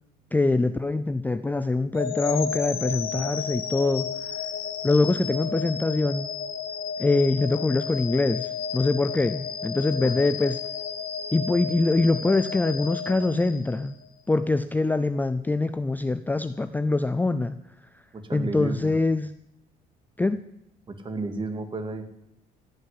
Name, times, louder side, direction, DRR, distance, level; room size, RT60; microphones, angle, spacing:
voice 1, 0.3-4.1 4.8-6.3 7.0-10.6 11.3-13.9 14.3-17.6 18.3-19.3 20.2-20.4, left 2 dB, 10° left, 11 dB, 0.5 m, -24 dB
sound 1, 1.9-14.1, left 7 dB, 65° left, 2.1 m, -33 dB
voice 2, 18.1-18.9 20.9-22.1, right 3 dB, 30° right, 7 dB, 2.1 m, -32 dB
15.5 x 6.6 x 9.8 m, 0.79 s
cardioid pair, 110°, 17 cm